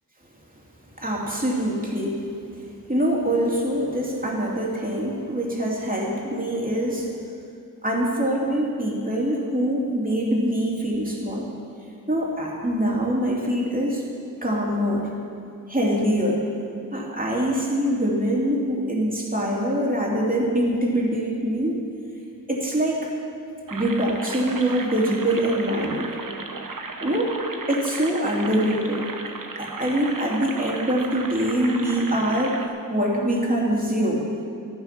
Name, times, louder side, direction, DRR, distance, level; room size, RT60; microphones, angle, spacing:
voice 1, 1.0-2.3 2.9-7.1 7.8-11.5 12.1-14.0 14.4-15.1 15.7-16.4 16.9-21.8 22.5-23.1 23.7-26.2 27.0-27.3 27.7-29.1 29.6-32.6 32.9-34.3, right 1 dB, 25° right, -3 dB, 3.1 m, -24 dB
sound 1, 23.7-32.7, right 3 dB, 65° right, 1.1 m, -35 dB
14.0 x 13.5 x 6.0 m, 2.5 s
wide cardioid pair, 80°, 35 cm